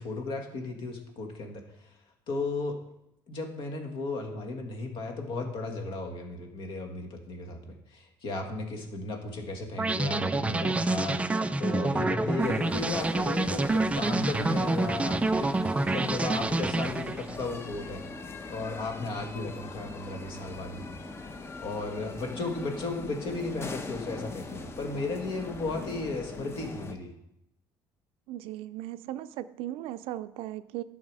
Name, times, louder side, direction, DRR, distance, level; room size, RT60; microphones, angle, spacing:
voice 1, 0.0-2.0 2.3-2.8 3.3-18.0 18.5-20.9 21.6-27.1, left 3 dB, 60° left, 4 dB, 1.8 m, -35 dB
sound 1, 9.8-17.5, right 2 dB, 15° right, 0.4 m, -27 dB
sound 2, 12.4-27.0, left 3 dB, 25° left, 0.8 m, -41 dB
voice 2, 28.3-30.8, right 14 dB, 80° right, 14 dB, 0.4 m, -37 dB
10.5 x 5.9 x 4.8 m, 0.82 s
cardioid pair, 110°, 9 cm